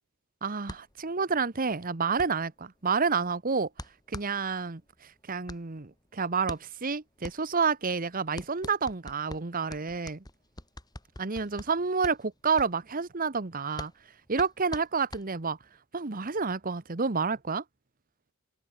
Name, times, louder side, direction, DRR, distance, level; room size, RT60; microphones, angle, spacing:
voice 1, 0.4-3.7 4.1-10.2 11.2-13.9 14.3-15.6 15.9-17.6, right 5 dB, 40° right, 1.1 m, -29 dB
sound 1, 0.6-15.8, left 1 dB, 20° left, 2.8 m, -45 dB
head